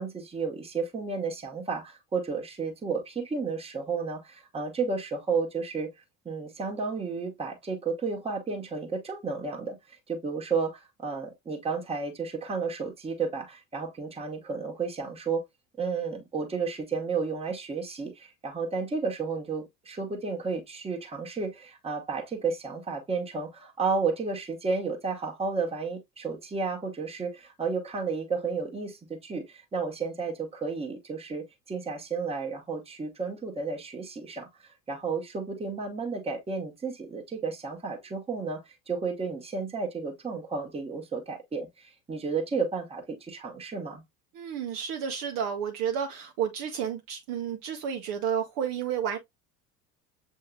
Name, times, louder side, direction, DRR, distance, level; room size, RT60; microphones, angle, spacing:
voice 1, 0.0-5.9 6.2-15.4 15.8-34.5 34.9-44.0, right 4 dB, 10° right, 1.1 m, -32 dB
voice 2, 44.3-49.2, right 8 dB, 40° right, 0.8 m, -31 dB
7.5 x 2.7 x 2.2 m
figure-of-eight pair, 70°, 49 cm